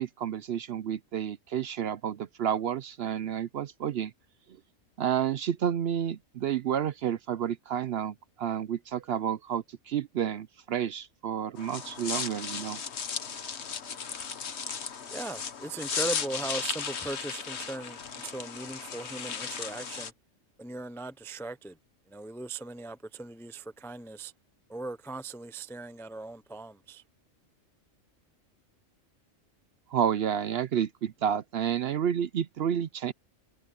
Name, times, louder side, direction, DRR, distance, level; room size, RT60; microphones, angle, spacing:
voice 1, 0.0-4.1 5.0-12.8 29.9-33.1, right 9 dB, 60° right, 0.7 m, -30 dB
sound 1, 11.6-20.1, left 6 dB, 60° left, 1.4 m, -36 dB
voice 2, 15.1-20.1 20.6-21.8 22.1-24.3 24.7-27.0, right 2 dB, 5° left, 0.3 m, -39 dB
omnidirectional pair, 1.3 m